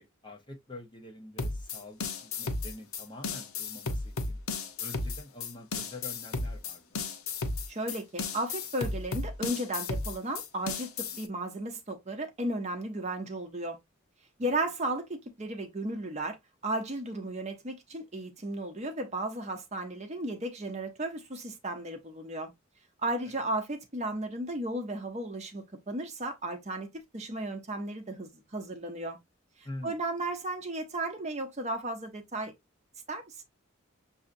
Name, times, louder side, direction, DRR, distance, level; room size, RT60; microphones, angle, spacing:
voice 1, 0.0-4.4 4.8-7.0 14.4-14.5 29.6-30.0, left 2 dB, 25° left, 0.9 m, -46 dB
sound 1, 1.4-11.3, left 3 dB, 90° left, 0.8 m, -34 dB
voice 2, 7.7-13.8 14.4-16.4 16.6-22.5 23.0-26.9 27.1-29.2 29.6-32.5 33.1-33.4, right 1 dB, 35° right, 0.8 m, -34 dB
6.4 x 2.8 x 2.6 m
head